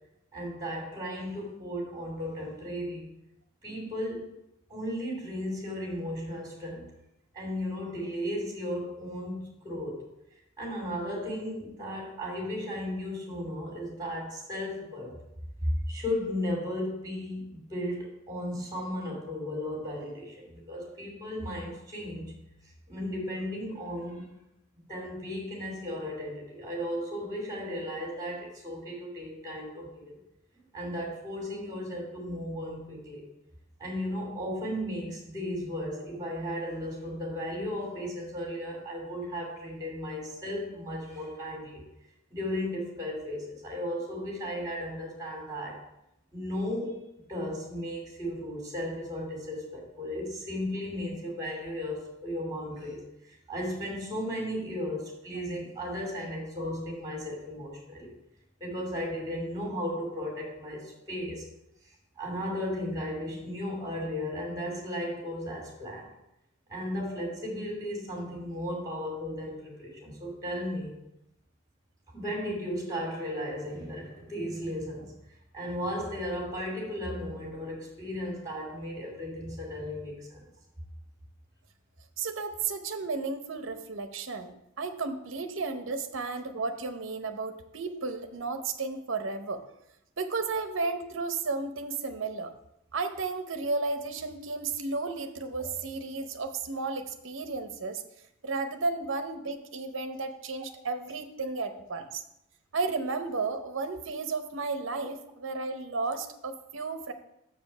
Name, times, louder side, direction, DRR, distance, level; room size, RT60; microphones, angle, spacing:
voice 1, 0.3-3.1 3.6-4.3 4.7-6.9 7.3-10.0 10.6-15.2 15.6-22.3 22.9-24.3 24.9-30.2 30.7-33.2 33.8-41.8 42.3-45.8 46.3-47.0 47.3-58.1 58.6-61.4 62.2-66.1 66.7-70.9 72.1-75.1 75.5-80.4, equal, 20° right, -1 dB, 2.7 m, -35 dB
voice 2, 82.2-89.6 90.2-92.5 92.9-98.0 98.4-102.2 102.7-107.1, right 3 dB, 65° right, 8 dB, 0.8 m, -33 dB
7.0 x 5.1 x 5.6 m, 0.83 s
head